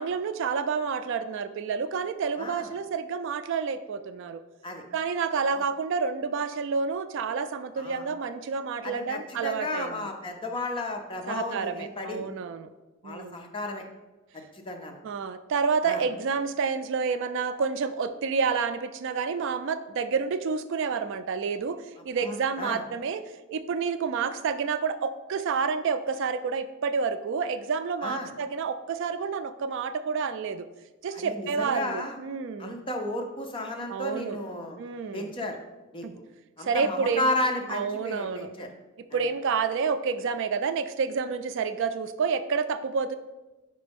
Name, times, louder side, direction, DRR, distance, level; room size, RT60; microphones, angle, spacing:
voice 1, 0.0-4.4 4.9-10.1 11.3-12.7 13.0-13.4 15.0-23.2 23.5-30.7 31.0-32.8 33.9-34.4 34.8-35.3 36.0-36.2 36.6-37.3 37.7-38.5 39.1-43.2, right 5 dB, 60° right, 11 dB, 0.3 m, -29 dB
voice 2, 2.4-2.7 4.6-4.8 5.5-5.6 7.8-8.1 8.8-12.3 13.0-13.8 14.3-15.0 15.8-16.0 22.2-22.8 28.0-28.3 31.1-32.2 32.6-34.8 35.1-35.6 35.9-36.1 36.6-38.7, left 1 dB, 25° left, 2 dB, 0.6 m, -33 dB
5.0 x 4.4 x 5.2 m, 1.1 s
head